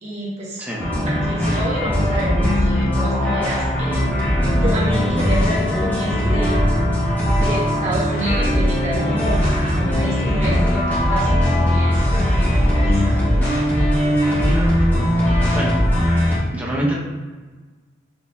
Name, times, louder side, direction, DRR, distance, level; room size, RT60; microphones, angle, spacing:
voice 1, 0.0-0.7 1.0-4.2 4.5-6.6 7.4-13.2, equal, 35° right, -6 dB, 1.3 m, -28 dB
sound 1, 0.8-16.4, equal, 10° left, 1.1 m, -19 dB
voice 2, 15.2-15.8 16.5-17.0, right 1 dB, 10° right, -5 dB, 0.7 m, -26 dB
4.3 x 2.7 x 3.4 m, 1.3 s
head